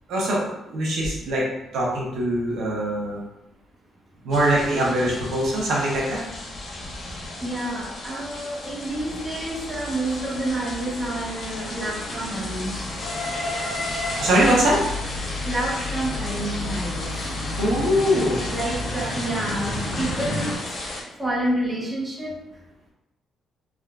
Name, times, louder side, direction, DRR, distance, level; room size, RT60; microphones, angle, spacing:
voice 1, 0.1-1.5 1.7-3.2 4.2-6.2 14.2-14.8 17.6-18.5, right 1 dB, 65° right, -3 dB, 0.8 m, -22 dB
sound 1, 4.3-21.0, left 2 dB, 40° left, 0.6 m, -35 dB
voice 2, 7.4-12.8 15.4-17.3 18.5-20.5 21.2-22.4, right 1 dB, 10° right, -5 dB, 0.6 m, -29 dB
sound 2, 8.9-20.6, left 2 dB, 75° left, 1.2 m, -33 dB
3.5 x 2.5 x 2.3 m, 0.92 s
cardioid pair, 170°, 0 cm